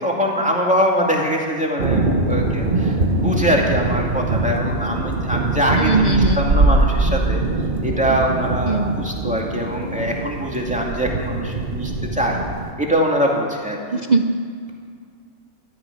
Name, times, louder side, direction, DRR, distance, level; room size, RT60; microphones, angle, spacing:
voice 1, 0.0-7.4 7.8-12.4 12.8-14.0, equal, 5° right, -2 dB, 2.5 m, -23 dB
sound 1, 1.8-12.7, right 2 dB, 35° right, 1.2 m, -22 dB
voice 2, 5.7-6.4 8.7-9.0 13.9-14.4, right 3 dB, 75° right, 6 dB, 0.4 m, -19 dB
13.5 x 10.5 x 9.9 m, 2.2 s
omnidirectional pair, 1.7 m